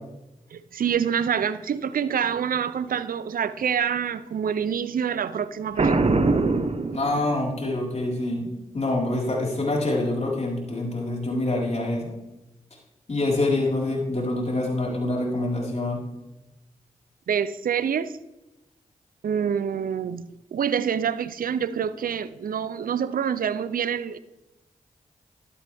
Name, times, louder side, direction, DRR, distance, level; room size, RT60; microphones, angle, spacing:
voice 1, 0.5-6.2 17.3-18.1 19.2-24.2, right 8 dB, 75° right, 15 dB, 0.6 m, -26 dB
Boom, 5.8-7.6, right 3 dB, 45° right, 1.3 m, -22 dB
voice 2, 6.9-8.5 8.7-12.1 13.1-16.0, left 2 dB, 50° left, -3 dB, 4.7 m, -26 dB
12.5 x 11.5 x 3.6 m, 0.98 s
cardioid pair, 45°, 15 cm